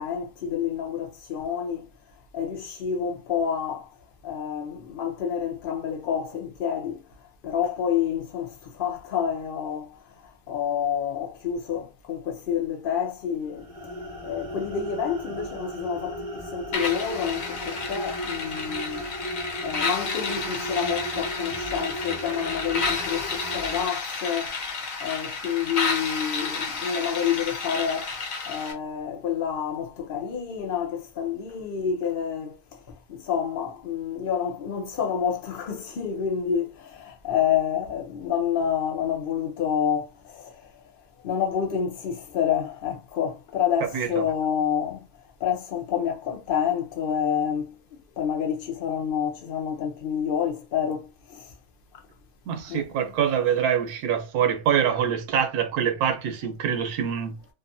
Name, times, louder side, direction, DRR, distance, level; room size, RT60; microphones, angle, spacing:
voice 1, 0.0-1.8 2.3-3.9 4.2-7.0 7.4-9.9 10.5-13.6 14.2-19.1 19.6-24.6 25.0-28.1 28.5-32.5 33.1-40.5 41.2-45.0 45.4-47.7 48.2-51.4 52.7-52.8, left 8 dB, 50° left, 0.7 m, -28 dB
sound 1, 13.5-23.9, right 1 dB, 35° right, 0.6 m, -36 dB
sound 2, 16.7-28.7, left 4 dB, 65° left, 1.0 m, -31 dB
voice 2, 43.9-44.3 52.5-57.3, right 8 dB, 75° right, 1.1 m, -25 dB
2.7 x 2.5 x 2.6 m
omnidirectional pair, 1.6 m